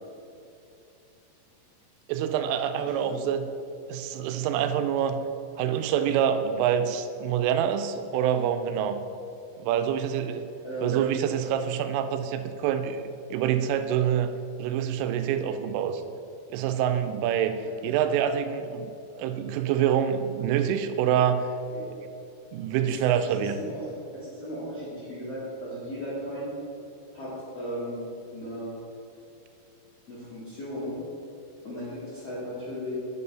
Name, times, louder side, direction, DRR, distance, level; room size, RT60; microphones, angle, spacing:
voice 1, 2.1-3.5 3.9-5.2 5.6-9.0 9.6-10.4 10.8-13.0 13.3-14.3 14.6-16.0 16.5-17.5 17.8-21.4 22.5-23.6, right 9 dB, 85° right, 8 dB, 3.1 m, -26 dB
voice 2, 2.9-3.2 10.6-11.0 17.6-17.7 21.7-21.9 22.8-22.9 23.2-26.5 27.1-28.0 28.3-28.7 30.1-31.0 31.6-32.9, equal, 45° left, -10 dB, 2.2 m, -36 dB
9.9 x 5.5 x 5.5 m, 2.7 s
omnidirectional pair, 5.6 m